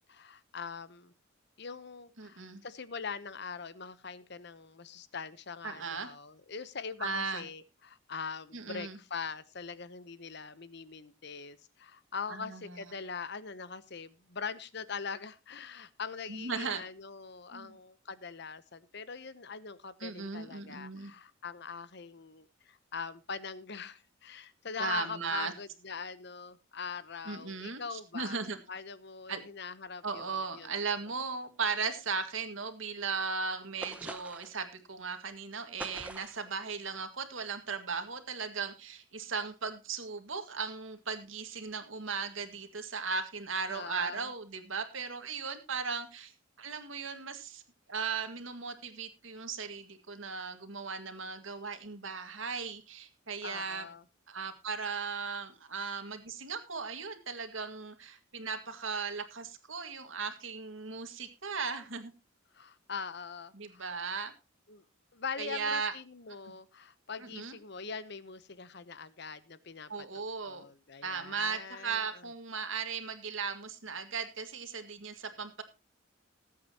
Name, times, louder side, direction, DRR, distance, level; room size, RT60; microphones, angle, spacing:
voice 1, 0.1-1.1 1.6-28.4 28.7-30.7 43.7-44.3 53.4-54.0 62.5-63.9 64.7-64.8 65.1-72.3, left 5 dB, 55° left, 15 dB, 0.9 m, -42 dB
voice 2, 2.2-2.6 5.6-6.1 7.0-7.4 8.5-9.0 12.3-12.7 16.3-16.8 17.5-17.7 20.0-21.1 24.8-25.5 27.3-28.6 29.3-29.4 30.0-46.3 46.6-47.6 47.9-53.9 54.3-62.1 63.5-64.3 65.4-65.9 67.2-67.5 69.9-70.7 71.0-75.6, right 5 dB, 70° right, 7 dB, 2.0 m, -37 dB
sound 1, 33.8-34.6 35.8-36.5, right 1 dB, 5° right, 0.8 m, -43 dB
20.0 x 8.6 x 2.9 m, 0.27 s
head